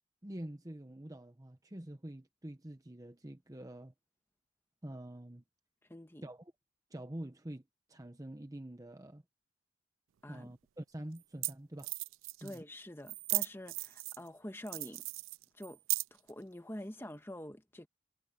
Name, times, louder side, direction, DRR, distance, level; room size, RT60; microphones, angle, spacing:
voice 1, 0.2-3.9 4.8-5.4 6.2-6.5 6.9-7.6 7.9-9.2 10.3-11.9 12.4-12.6, right 1 dB, 20° right, 0.9 m, -46 dB
voice 2, 5.9-6.2 10.2-10.5 12.4-15.0 15.5-15.8 16.1-17.9, left 1 dB, 10° left, 1.5 m, -46 dB
sound 1, 10.3-10.4 11.2-11.3 11.4-11.5 11.8-12.6 13.1-14.3 14.7-16.3, right 23 dB, 85° right, 0.3 m, -36 dB
head